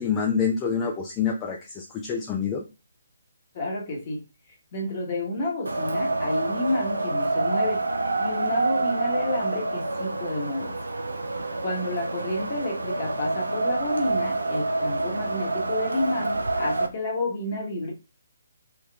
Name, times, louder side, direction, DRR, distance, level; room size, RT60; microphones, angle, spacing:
voice 1, 0.0-2.6, left 6 dB, 15° left, 0 dB, 0.4 m, -27 dB
voice 2, 3.5-4.2 4.7-7.8 8.2-10.7 11.6-17.9, left 1 dB, 35° left, 0 dB, 1.2 m, -30 dB
Wind, 5.7-16.9, right 2 dB, 70° right, 0.5 m, -27 dB
3.5 x 3.0 x 2.3 m, 0.28 s
figure-of-eight pair, 140°, 0 cm